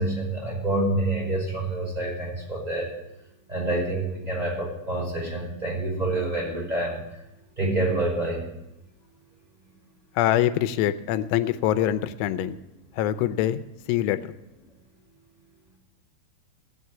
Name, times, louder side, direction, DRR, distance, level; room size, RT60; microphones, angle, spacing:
voice 1, 0.0-2.9 3.5-7.2 7.6-8.4 13.9-14.1, right 2 dB, 10° right, -4 dB, 5.3 m, -27 dB
voice 2, 10.2-12.6 13.0-13.6 13.9-14.2, left 12 dB, 85° left, 12 dB, 3.1 m, -24 dB
16.0 x 8.0 x 9.3 m, 0.88 s
omnidirectional pair, 5.4 m